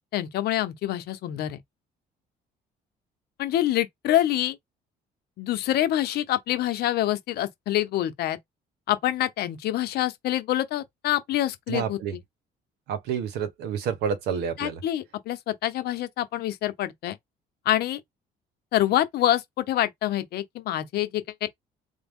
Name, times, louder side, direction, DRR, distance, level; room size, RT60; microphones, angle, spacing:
voice 1, 0.1-1.6 3.4-4.6 5.4-8.4 8.9-12.0 14.6-17.2 17.7-18.0 18.7-21.5, left 13 dB, 70° left, 0.8 m, -26 dB
voice 2, 11.7-12.2 12.9-14.8, right 7 dB, 80° right, 1.2 m, -29 dB
3.4 x 2.1 x 3.6 m
cardioid pair, 110°, 17 cm